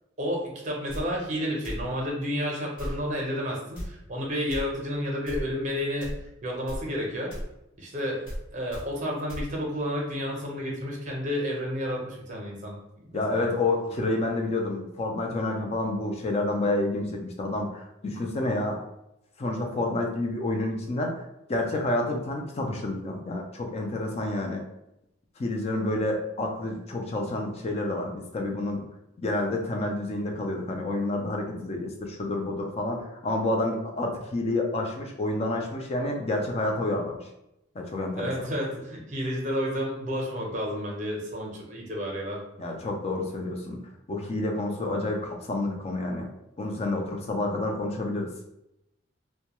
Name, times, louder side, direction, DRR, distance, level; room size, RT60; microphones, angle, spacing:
voice 1, 0.2-6.1 6.4-7.3 7.8-13.5 38.2-42.4, equal, 40° right, -1 dB, 0.6 m, -31 dB
sound 1, 0.9-1.0 1.6-1.9 2.8-3.0 3.7-3.9 4.5-4.6 5.3-5.5 6.0-6.2 6.7-6.8 7.3-7.5 8.3-8.4 8.7-8.8 9.3-9.5, equal, 75° left, 1.1 m, -34 dB
voice 2, 13.1-18.8 19.4-21.1 21.5-24.6 25.4-28.8 29.2-37.2 37.7-38.3 42.6-43.8 44.1-46.3 46.6-48.3, left 2 dB, 35° left, 2 dB, 0.4 m, -29 dB
2.2 x 2.1 x 2.9 m, 0.86 s
head